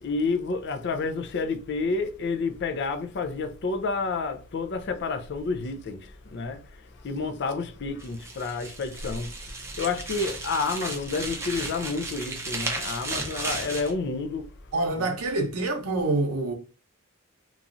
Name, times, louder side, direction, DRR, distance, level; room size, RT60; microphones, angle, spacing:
voice 1, 0.0-14.5, left 4 dB, 55° left, 0.4 m, -30 dB
sound 1, 8.0-13.9, right 2 dB, 10° right, 0.5 m, -35 dB
voice 2, 14.7-16.5, right 2 dB, 85° right, 0.7 m, -26 dB
3.0 x 2.4 x 2.5 m
head